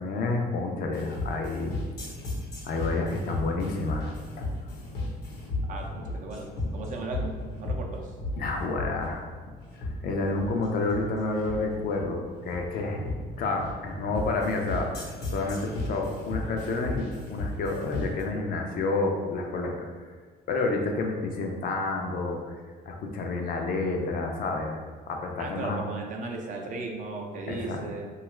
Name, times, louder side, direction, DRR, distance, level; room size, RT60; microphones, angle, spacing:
voice 1, 0.0-1.8 2.6-4.5 8.4-9.2 9.8-13.0 13.4-19.9 20.5-22.5 22.9-24.8 25.1-25.8 27.5-27.8, left 3 dB, 60° left, 2 dB, 0.5 m, -29 dB
sound 1, 0.9-18.2, left 2 dB, 85° left, 0.9 m, -35 dB
voice 2, 5.7-8.1 25.4-28.1, right 3 dB, 50° right, 0 dB, 0.5 m, -36 dB
2.8 x 2.3 x 3.1 m, 1.5 s
cardioid pair, 110°, 17 cm